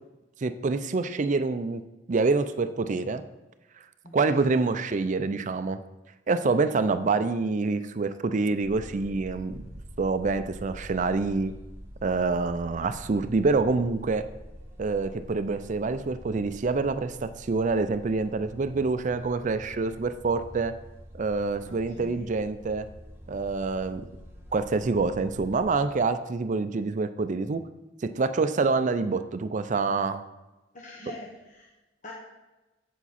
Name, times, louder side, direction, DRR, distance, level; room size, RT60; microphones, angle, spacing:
voice 1, 0.4-1.8 2.1-3.2 4.1-5.8 6.3-9.6 10.0-11.5 12.0-14.2 14.8-20.7 21.1-22.9 23.3-24.0 24.5-27.6 28.0-30.2, right 3 dB, 40° right, 11 dB, 0.4 m, -26 dB
voice 2, 4.0-4.6 21.7-22.3 30.7-31.7 32.0-32.1, left 1 dB, 45° left, -3 dB, 1.1 m, -44 dB
sound 1, 8.6-25.7, equal, 15° right, 1.2 m, -46 dB
7.9 x 7.3 x 4.2 m, 1.1 s
head